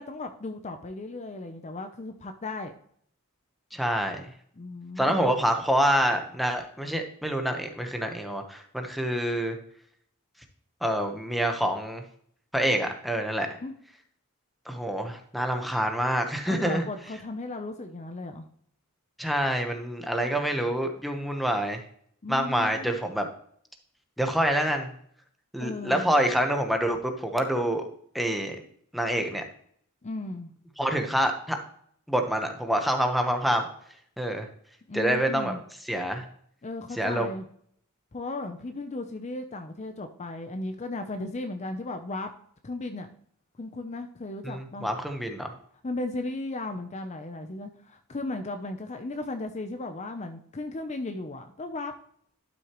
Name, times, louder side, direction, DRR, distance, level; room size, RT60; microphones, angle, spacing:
voice 1, 0.0-2.7 4.6-5.2 13.4-13.7 16.5-18.5 22.2-22.9 25.6-26.1 30.0-30.5 34.9-35.6 36.6-37.4 38.1-42.3 42.6-43.1 43.6-44.9 45.8-51.9, left 2 dB, 30° left, 7 dB, 0.6 m, -36 dB
voice 2, 3.7-4.3 5.0-9.6 10.8-12.0 12.5-13.5 14.7-16.8 19.2-21.8 22.3-23.3 24.2-24.9 25.5-27.9 28.1-28.6 28.9-29.4 30.8-31.6 32.1-33.7 34.2-34.5 34.9-35.5 35.9-36.2 37.0-37.3 44.4-45.5, equal, ahead, 4 dB, 1.0 m, -26 dB
11.5 x 6.2 x 3.0 m, 0.63 s
head